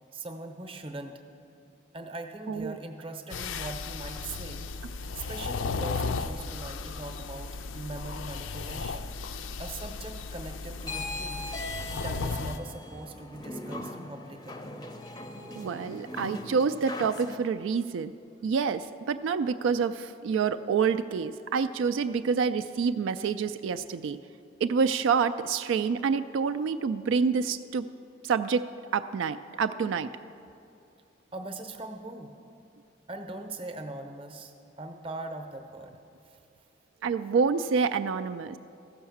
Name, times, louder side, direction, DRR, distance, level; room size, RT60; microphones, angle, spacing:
voice 1, 0.1-1.2 1.9-11.5 11.9-14.7 31.3-32.3 33.1-36.4, right 2 dB, 30° right, 6 dB, 0.7 m, -41 dB
voice 2, 2.5-2.8 15.6-18.1 18.4-24.2 24.6-27.9 28.2-28.6 28.9-30.1 37.0-38.6, right 5 dB, 85° right, 10 dB, 0.3 m, -27 dB
sound 1, 3.3-12.6, left 4 dB, 85° left, 0.4 m, -35 dB
sound 2, 10.8-17.4, left 2 dB, 20° left, 0.5 m, -39 dB
14.5 x 5.6 x 7.1 m, 2.6 s
head